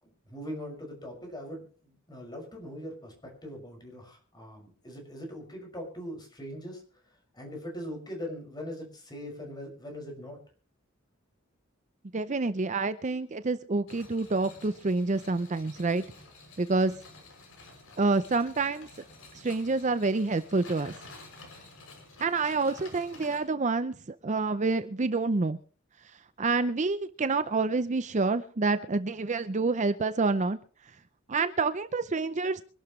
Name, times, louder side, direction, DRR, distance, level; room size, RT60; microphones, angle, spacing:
voice 1, 0.0-6.8 7.3-10.4, equal, 20° left, 1 dB, 6.1 m, -41 dB
voice 2, 12.1-16.0 16.6-16.9 18.0-18.9 19.3-20.9 22.2-23.9 24.2-25.6 26.4-30.6 31.3-32.6, right 3 dB, 35° right, 12 dB, 0.6 m, -27 dB
sound 1, 13.9-23.4, left 3 dB, 80° left, 6.5 m, -50 dB
25.0 x 12.0 x 3.2 m, 0.41 s
head